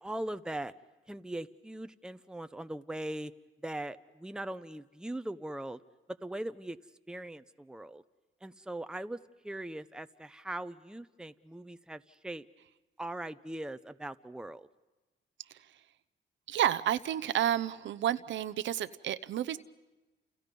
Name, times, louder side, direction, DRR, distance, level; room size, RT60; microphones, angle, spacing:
voice 1, 0.0-0.7 1.1-3.3 3.6-5.8 6.2-6.8 7.1-8.0 8.4-9.2 9.4-12.5 13.0-14.7, right 1 dB, 5° right, 10 dB, 0.8 m, -40 dB
voice 2, 16.5-19.6, right 11 dB, 70° right, 14 dB, 0.9 m, -30 dB
29.5 x 29.5 x 5.4 m, 1.1 s
cardioid pair, 90°, 20 cm